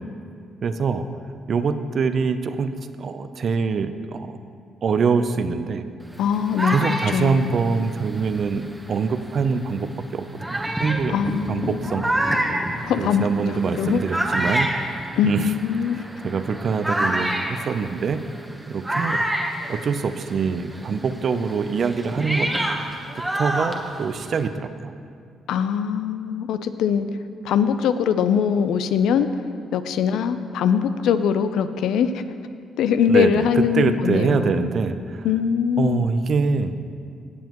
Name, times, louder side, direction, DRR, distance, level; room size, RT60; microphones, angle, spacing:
voice 1, 0.6-1.1 1.5-2.7 3.0-4.4 4.8-5.8 6.7-11.1 11.5-12.1 12.6-15.6 16.2-18.2 18.7-19.2 19.7-22.5 23.3-24.9 33.1-33.5 33.7-35.3 35.8-36.7, right 5 dB, 55° right, 10 dB, 0.5 m, -24 dB
sound 1, 6.1-9.1 9.8-9.9 10.4-20.4 20.7-24.5, right 1 dB, 10° right, 1.0 m, -28 dB
voice 2, 6.2-7.5 11.1-12.0 12.8-13.3 13.7-14.0 15.2-16.0 25.5-27.1 27.4-29.3 29.7-32.2 32.8-34.7 35.2-36.1, left 8 dB, 80° left, 11 dB, 0.4 m, -22 dB
17.0 x 7.2 x 3.0 m, 2.3 s
cardioid pair, 90°, 0 cm